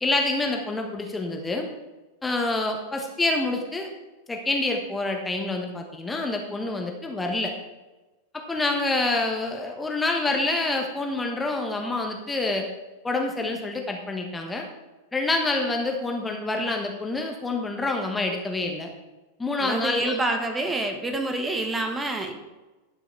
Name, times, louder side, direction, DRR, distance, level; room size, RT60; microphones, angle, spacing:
voice 1, 0.0-1.7 2.2-3.9 4.3-7.5 8.3-12.7 13.0-14.7 15.1-18.9 19.4-20.4, left 2 dB, 10° left, 3 dB, 1.2 m, -27 dB
voice 2, 19.6-22.3, right 2 dB, 15° right, 5 dB, 1.3 m, -27 dB
12.0 x 6.3 x 4.6 m, 1.1 s
figure-of-eight pair, 90°, 0 cm